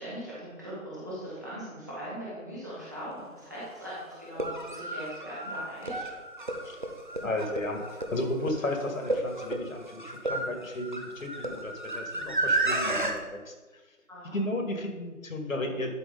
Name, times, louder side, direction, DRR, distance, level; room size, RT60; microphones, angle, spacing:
voice 1, 0.0-6.0 14.1-14.4, equal, 15° right, -10 dB, 1.1 m, -40 dB
sound 1, 3.1-3.2 4.2-13.1, right 2 dB, 35° right, 0.7 m, -32 dB
voice 2, 7.2-13.5 14.3-15.9, left 1 dB, 65° left, 3 dB, 1.9 m, -33 dB
11.0 x 4.6 x 4.0 m, 1.2 s
figure-of-eight pair, 170°, 42 cm